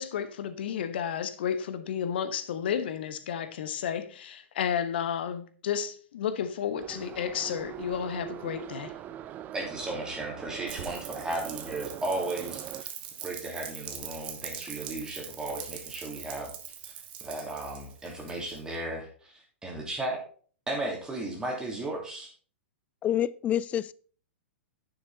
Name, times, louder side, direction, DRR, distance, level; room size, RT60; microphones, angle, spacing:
voice 1, 0.0-8.9, left 8 dB, 55° left, 1.1 m, -32 dB
Subway metro underground, 6.7-12.8, right 11 dB, 25° right, 0.6 m, -42 dB
voice 2, 9.5-12.9 13.2-16.5 17.2-19.3 19.6-20.2 20.7-22.3, right 2 dB, 10° right, 2.8 m, -35 dB
Rain, 10.7-18.8, right 9 dB, 50° right, 1.7 m, -42 dB
voice 3, 23.0-23.9, left 11 dB, 20° left, 0.3 m, -27 dB
10.0 x 6.9 x 4.0 m
figure-of-eight pair, 105°, 7 cm